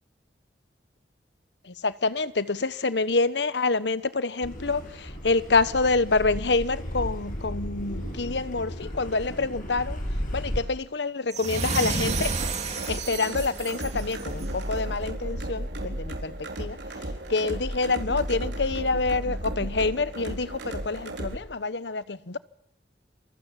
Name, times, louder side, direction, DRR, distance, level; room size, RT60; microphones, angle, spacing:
voice 1, 1.6-10.0 10.3-12.4 12.8-22.4, left 3 dB, 80° left, 1.1 m, -27 dB
Car passing by / Accelerating revving vroom, 4.4-10.6, equal, 50° left, 7.8 m, -34 dB
sound 1, 11.3-14.6, right 4 dB, 40° right, 3.4 m, -31 dB
sound 2, 11.9-21.4, right 1 dB, 85° right, 4.3 m, -34 dB
27.5 x 23.0 x 7.4 m
head